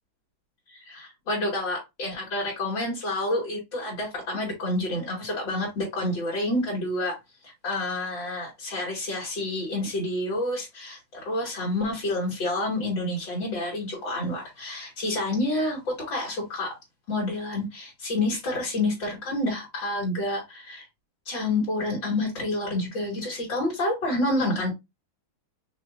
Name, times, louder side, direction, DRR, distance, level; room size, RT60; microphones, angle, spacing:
voice 1, 0.9-7.2 7.4-16.8 17.1-20.8 21.3-24.7, left 1 dB, 65° left, 2.6 m, -28 dB
5.7 x 3.1 x 2.5 m
omnidirectional pair, 2.2 m